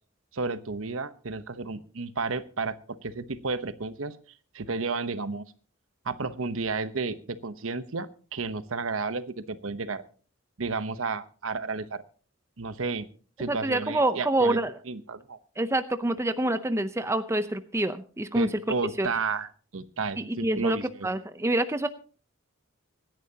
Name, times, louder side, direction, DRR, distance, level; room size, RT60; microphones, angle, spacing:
voice 1, 0.3-2.8 3.0-4.2 4.5-5.4 6.0-10.0 10.6-12.0 12.6-13.1 13.4-14.6 14.9-15.4 18.3-20.8, right 4 dB, 75° right, 13 dB, 0.9 m, -32 dB
voice 2, 13.5-14.7 15.6-18.5 19.0-19.1 20.2-21.9, right 1 dB, 15° right, 10 dB, 0.6 m, -27 dB
25.0 x 10.5 x 2.8 m, 0.39 s
head